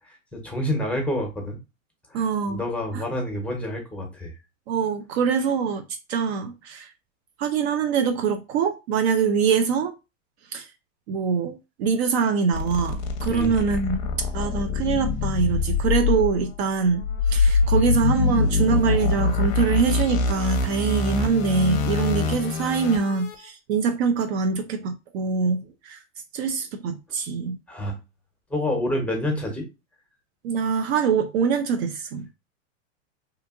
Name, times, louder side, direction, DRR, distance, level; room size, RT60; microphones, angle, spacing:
voice 1, 0.1-1.6 2.1-4.3 13.3-13.5 27.7-28.0 28.5-29.6, left 1 dB, 5° left, 0.7 m, -28 dB
voice 2, 2.1-2.6 2.9-3.0 4.7-5.8 6.1-6.9 7.4-9.9 10.5-10.7 11.1-26.0 26.3-27.6 30.4-32.3, right 5 dB, 55° right, 0.4 m, -24 dB
sound 1, 12.5-23.3, left 4 dB, 40° left, 0.6 m, -24 dB
2.8 x 2.5 x 2.4 m
hypercardioid pair, 120°, 39 cm